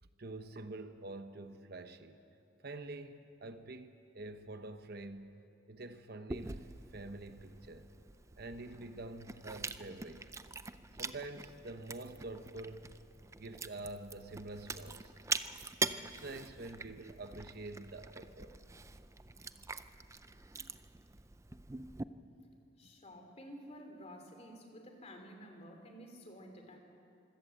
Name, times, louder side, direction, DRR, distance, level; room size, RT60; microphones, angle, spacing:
voice 1, 0.2-2.2 2.6-5.3 5.7-7.9 8.4-10.3 11.0-12.9 13.4-15.1 16.0-18.5, right 2 dB, 50° right, 8 dB, 0.9 m, -47 dB
Chewing mastication, 6.3-22.0, right 4 dB, 15° right, 0.5 m, -44 dB
voice 2, 22.8-26.8, equal, 30° left, 4 dB, 2.9 m, -51 dB
25.0 x 16.5 x 7.8 m, 2.7 s
head